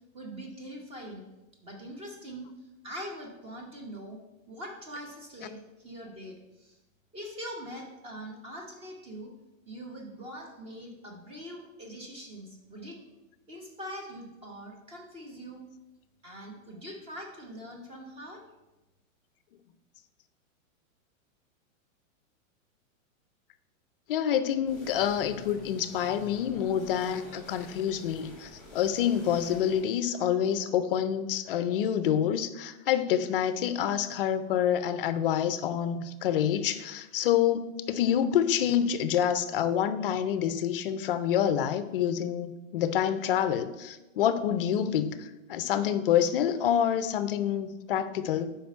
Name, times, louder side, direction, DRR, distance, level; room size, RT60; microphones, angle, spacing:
voice 1, 0.1-1.2 1.6-2.5 2.8-4.2 4.5-6.8 7.1-9.3 9.6-13.0 13.5-15.6 16.2-18.4, equal, 15° right, 1 dB, 0.9 m, -42 dB
voice 2, 24.1-48.5, left 9 dB, 45° left, 11 dB, 0.5 m, -27 dB
sound 1, 24.6-29.8, left 1 dB, ahead, 1.6 m, -48 dB
5.9 x 5.1 x 5.4 m, 1.0 s
supercardioid pair, 160°, 41 cm